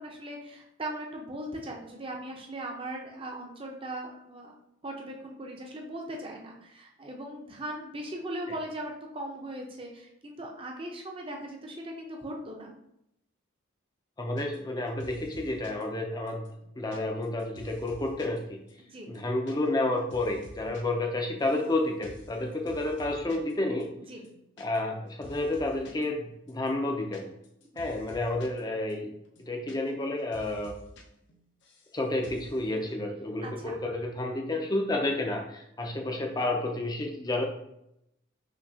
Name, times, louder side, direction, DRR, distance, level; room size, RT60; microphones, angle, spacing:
voice 1, 0.0-4.6 4.8-12.7 18.9-19.1 24.0-24.2 27.7-27.8 33.4-33.8, right 1 dB, 25° right, 1 dB, 0.7 m, -39 dB
voice 2, 14.2-16.4 16.8-18.6 19.1-23.9 24.6-27.3 27.8-29.1 29.5-30.8 31.9-37.4, left 2 dB, 20° left, 2 dB, 0.5 m, -30 dB
sound 1, 14.4-14.7 15.0-15.8 16.3-18.4 18.7-18.8 19.0-19.5 19.8-20.8 21.1-21.7 22.0-22.3 22.7-23.5 23.8-23.9 24.1-25.0 25.2-26.0 26.5-28.6 28.9-29.0 29.2-30.1 30.3-31.0 31.3-31.9 32.2-32.6, left 1 dB, 60° left, 0.7 m, -49 dB
5.8 x 2.8 x 2.8 m, 0.80 s
head